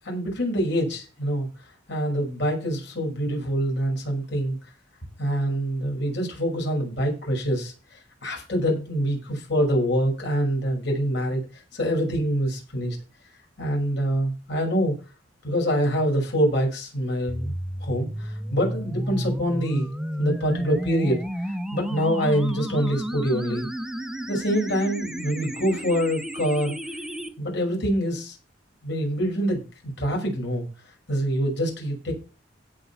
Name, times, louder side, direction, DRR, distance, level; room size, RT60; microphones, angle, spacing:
voice 1, 0.0-1.5 1.9-4.6 5.2-7.7 8.2-11.4 11.7-13.0 13.6-15.0 15.4-17.5 17.8-19.9 20.2-23.7 24.3-26.8 27.4-28.4 28.8-30.7 31.1-32.2, equal, 65° left, 0 dB, 6.2 m, -25 dB
sound 1, 17.3-27.3, equal, 5° right, 0.9 m, -32 dB
16.5 x 5.5 x 5.7 m, 0.33 s
head